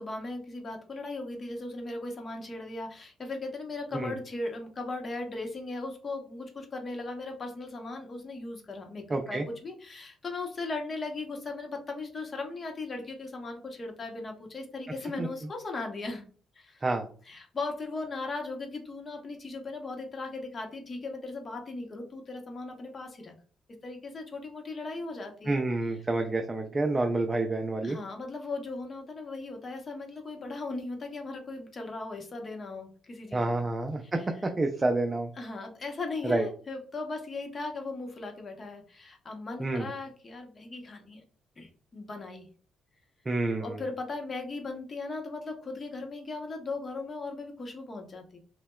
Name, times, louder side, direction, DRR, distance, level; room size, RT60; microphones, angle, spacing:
voice 1, 0.0-16.3 16.6-16.8 17.2-23.3 23.8-25.6 27.8-33.6 34.2-34.3 35.4-41.2 41.6-42.5 43.6-48.4, left 3 dB, 35° left, 3 dB, 0.8 m, -38 dB
voice 2, 9.1-9.5 15.2-15.3 16.8-17.1 25.5-28.0 33.3-35.3 36.2-36.5 39.6-39.9 43.3-43.8, right 2 dB, 20° right, 4 dB, 0.4 m, -28 dB
5.7 x 2.1 x 2.3 m, 0.43 s
cardioid pair, 115°, 0 cm